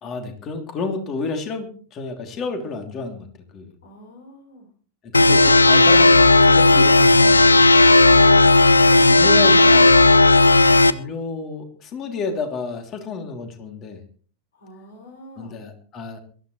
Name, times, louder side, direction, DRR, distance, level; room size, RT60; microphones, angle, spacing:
voice 1, 0.0-3.3 3.5-3.7 5.0-7.7 8.8-10.3 10.7-14.0 15.4-16.2, left 4 dB, 30° left, 5 dB, 3.1 m, -30 dB
voice 2, 3.8-4.7 7.9-10.3 14.5-15.5, left 1 dB, 65° left, 3 dB, 5.9 m, -43 dB
sound 1, 5.1-10.9, left 2 dB, 80° left, 0.6 m, -13 dB
22.5 x 13.5 x 3.2 m, 0.43 s
figure-of-eight pair, 90°, 0 cm